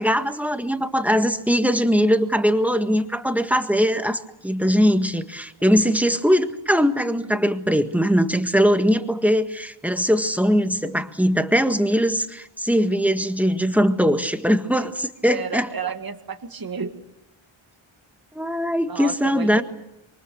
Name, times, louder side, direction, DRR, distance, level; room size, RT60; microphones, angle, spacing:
voice 1, 0.0-15.7 18.3-19.6, equal, 5° right, 7 dB, 1.6 m, -21 dB
voice 2, 15.3-16.9 18.9-19.6, right 6 dB, 45° right, 5 dB, 2.0 m, -32 dB
27.0 x 24.0 x 7.1 m, 0.91 s
wide cardioid pair, 90°, 49 cm